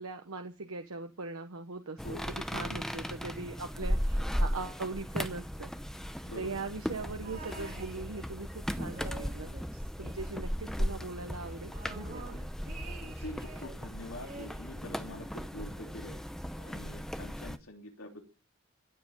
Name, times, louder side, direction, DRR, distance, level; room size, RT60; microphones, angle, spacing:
voice 1, 0.0-5.7 6.4-9.5 10.0-12.4, right 3 dB, 85° right, 6 dB, 1.0 m, -40 dB
voice 2, 2.0-2.4 6.2-6.5 13.0-16.2 16.5-18.2, left 1 dB, 80° left, 3 dB, 2.9 m, -45 dB
sound 1, 2.0-17.6, equal, ahead, 0.7 m, -36 dB
sound 2, 7.2-8.5 8.8-10.7 11.0-11.1 11.4-13.8 14.2-15.5 16.3-16.4, right 3 dB, 40° right, 3.3 m, -49 dB
15.5 x 7.7 x 8.9 m, 0.35 s
head